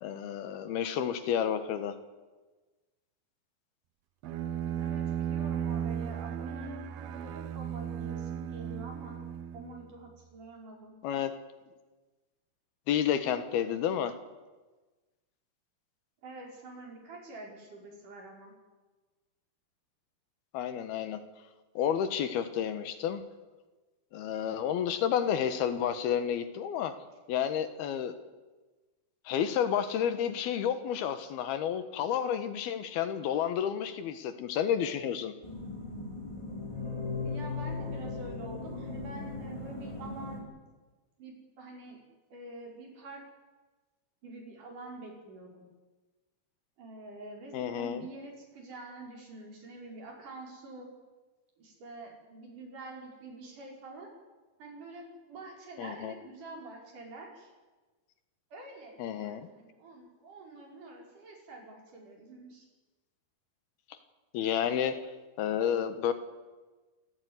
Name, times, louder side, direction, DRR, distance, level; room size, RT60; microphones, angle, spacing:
voice 1, 0.0-1.9 11.0-11.3 12.9-14.1 20.5-21.2 21.8-23.2 24.1-26.9 27.3-28.1 29.3-35.3 47.5-48.0 55.8-56.1 59.0-59.4 64.3-65.0 65.4-66.1, left 9 dB, 80° left, 10 dB, 3.4 m, -30 dB
voice 2, 4.2-9.2 9.5-11.0 16.2-18.5 37.2-40.5 41.2-42.0 42.3-43.2 44.2-45.7 46.8-50.9 51.6-54.1 54.6-57.5 58.5-62.7, right 2 dB, 55° right, 0 dB, 6.6 m, -46 dB
Bowed string instrument, 4.2-10.1, right 9 dB, 90° right, 1.4 m, -35 dB
sound 1, 35.4-40.4, left 3 dB, 10° left, 4.1 m, -38 dB
27.0 x 15.0 x 9.7 m, 1.3 s
omnidirectional pair, 4.4 m